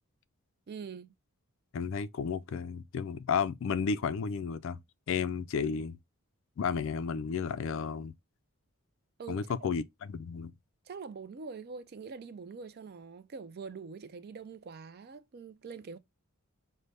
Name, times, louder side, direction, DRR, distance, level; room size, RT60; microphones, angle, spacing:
voice 1, 0.7-1.1 9.2-9.7 10.9-16.0, right 5 dB, 45° right, 0.4 m, -44 dB
voice 2, 1.7-4.8 5.1-6.0 6.6-8.1 9.3-10.5, left 6 dB, 60° left, 0.3 m, -32 dB
5.3 x 2.1 x 3.2 m
head